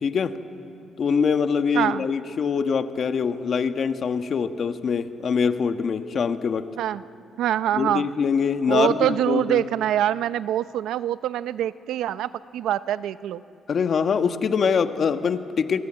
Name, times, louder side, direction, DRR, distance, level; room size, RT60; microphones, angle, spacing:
voice 1, 0.0-0.4 1.0-6.7 7.7-9.6 13.7-15.8, left 6 dB, 50° left, 8 dB, 1.4 m, -24 dB
voice 2, 1.7-2.0 6.8-7.0 7.4-8.1 8.7-13.4, right 11 dB, 85° right, 15 dB, 0.6 m, -24 dB
28.0 x 23.5 x 8.9 m, 2.7 s
cardioid pair, 90°, 0 cm